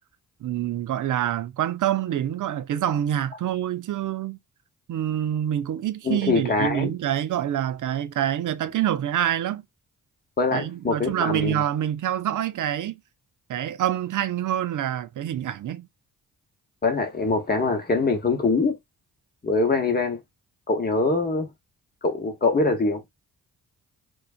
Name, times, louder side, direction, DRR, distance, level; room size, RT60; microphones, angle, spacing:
voice 1, 0.4-4.4 4.9-9.6 10.5-12.9 13.5-15.9, right 11 dB, 55° right, 0.5 m, -26 dB
voice 2, 6.0-6.9 10.4-11.6 16.8-18.7 19.4-20.2 20.7-21.5 22.0-23.0, left 3 dB, 25° left, 1.0 m, -23 dB
2.5 x 2.3 x 2.4 m
supercardioid pair, 50°, 38 cm